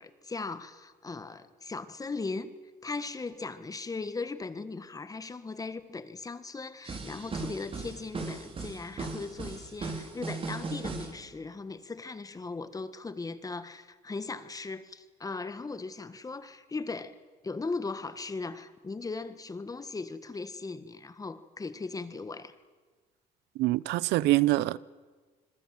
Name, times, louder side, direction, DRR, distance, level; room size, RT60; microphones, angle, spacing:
voice 1, 0.0-2.5 2.8-17.1 17.4-22.5, left 3 dB, 20° left, 1.6 m, -38 dB
sound 1, 6.8-11.2, right 4 dB, 35° right, 4.4 m, -38 dB
voice 2, 23.6-24.8, right 18 dB, 85° right, 0.7 m, -25 dB
26.5 x 22.0 x 7.7 m
cardioid pair, 110°, 17 cm